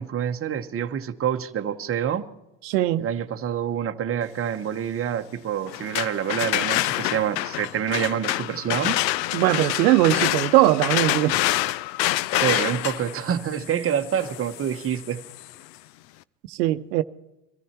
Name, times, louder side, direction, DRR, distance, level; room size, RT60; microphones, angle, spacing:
voice 1, 0.0-2.3 3.0-9.0 12.3-15.2, right 9 dB, 25° right, 1.1 m, -27 dB
voice 2, 2.6-3.1 9.3-11.4 16.5-17.0, right 16 dB, 90° right, 0.8 m, -20 dB
sound 1, 5.7-15.5, left 16 dB, 90° left, 0.6 m, -27 dB
23.0 x 14.0 x 4.4 m
supercardioid pair, 100°, 48 cm